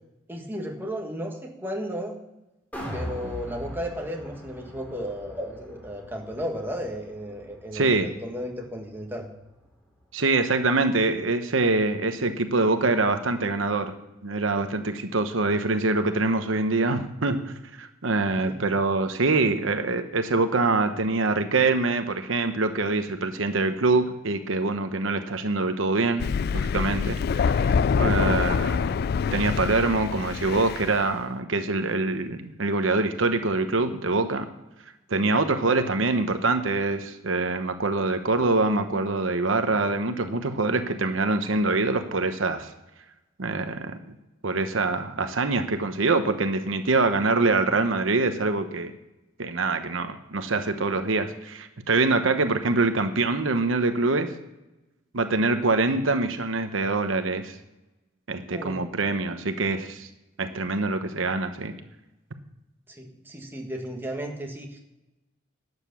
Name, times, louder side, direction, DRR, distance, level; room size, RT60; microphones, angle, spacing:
voice 1, 0.3-2.2 2.9-9.3 18.4-18.7 58.5-58.9 62.9-64.8, equal, 10° right, 1 dB, 1.8 m, -34 dB
sound 1, 2.7-8.9 9.3-9.4, equal, 10° left, 3.1 m, -40 dB
voice 2, 7.7-8.1 10.1-14.0 14.2-26.3 26.5-29.0 29.3-34.5 35.1-42.7 43.4-44.0 44.4-48.9 49.4-54.3 55.1-57.5 58.3-60.1 60.4-61.7, right 3 dB, 80° right, 8 dB, 1.0 m, -24 dB
Thunder, 26.2-31.0, left 6 dB, 55° left, 0.3 m, -25 dB
12.0 x 8.2 x 7.0 m, 0.99 s
head